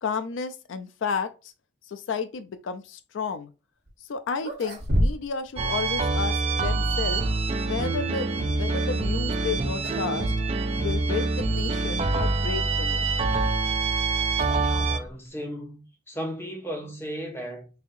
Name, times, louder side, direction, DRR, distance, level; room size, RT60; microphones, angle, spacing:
voice 1, 0.0-1.5 1.9-3.5 4.1-7.2 7.6-10.3 10.8-13.2, left 5 dB, 75° left, 0.4 m, -32 dB
sound 1, 3.9-4.0 4.4-5.5 5.7-5.8 6.7-7.4 9.2-9.5 9.8-10.1 10.4-10.5 11.3-11.4 13.2-15.3, equal, 50° right, 1.2 m, -30 dB
sound 2, 5.6-15.0, right 3 dB, 30° right, 0.3 m, -25 dB
voice 2, 14.5-17.7, equal, 10° left, 0.8 m, -36 dB
4.0 x 2.7 x 2.6 m
head